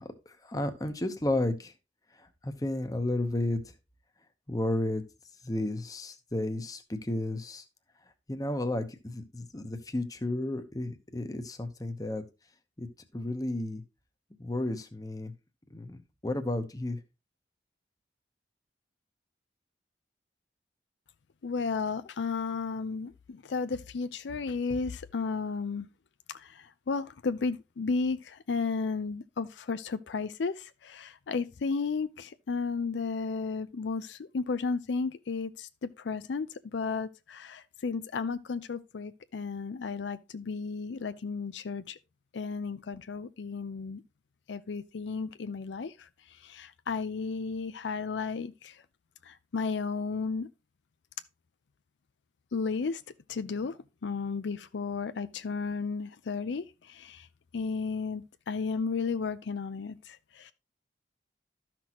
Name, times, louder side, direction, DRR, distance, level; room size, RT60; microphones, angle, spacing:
voice 1, 0.0-1.7 2.2-3.6 4.5-5.0 5.4-7.6 8.3-12.2 12.8-12.9 13.1-13.8 14.4-15.3 15.7-17.0, left 1 dB, 20° left, 0.9 m, -32 dB
voice 2, 21.4-25.9 26.4-42.0 42.3-44.0 44.5-45.9 46.4-48.7 49.3-50.5 52.5-53.0 53.3-53.8 54.0-57.3 57.5-60.5, left 4 dB, 80° left, 0.5 m, -33 dB
12.5 x 6.0 x 3.0 m
head